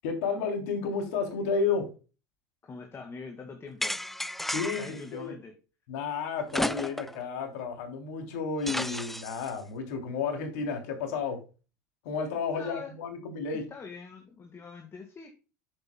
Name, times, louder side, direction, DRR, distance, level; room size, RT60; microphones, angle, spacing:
voice 1, 0.0-1.9 4.5-5.3 5.9-11.4 12.0-13.6, left 5 dB, 70° left, 4 dB, 3.2 m, -32 dB
voice 2, 2.6-4.1 4.8-5.5 12.5-12.9 13.7-15.3, left 4 dB, 30° left, 4 dB, 2.0 m, -43 dB
sound 1, 3.8-5.0 6.5-7.2 7.6-7.7 8.7-9.5, left 1 dB, ahead, 0.4 m, -33 dB
10.0 x 8.1 x 2.3 m, 0.32 s
hypercardioid pair, 80°, 9 cm